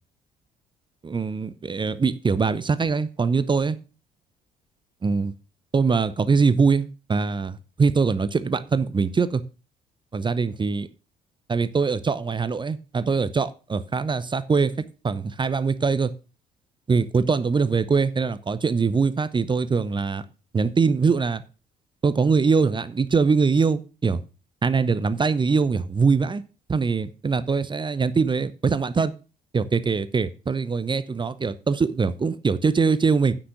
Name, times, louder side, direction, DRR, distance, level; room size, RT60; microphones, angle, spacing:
voice 1, 1.0-3.8 5.0-5.3 5.7-9.4 10.1-10.9 11.5-14.7 15.0-16.1 16.9-20.2 20.5-21.4 22.0-24.2 24.6-26.4 26.7-29.1 29.5-33.3, right 5 dB, 20° right, 14 dB, 0.8 m, -22 dB
9.6 x 6.1 x 6.5 m, 0.34 s
figure-of-eight pair, 50°, 21 cm